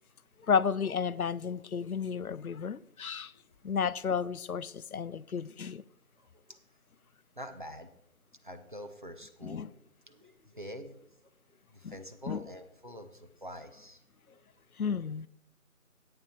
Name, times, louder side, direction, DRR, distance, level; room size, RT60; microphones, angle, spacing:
voice 1, 0.5-3.3 3.6-5.8 9.4-9.7 11.8-12.0 12.3-12.5 14.8-15.3, left 6 dB, 85° left, 0.6 m, -32 dB
voice 2, 7.4-7.9 8.4-9.7 10.1-11.0 11.7-14.0, equal, 35° right, 0.8 m, -45 dB
10.0 x 8.8 x 4.4 m
figure-of-eight pair, 165°, 42 cm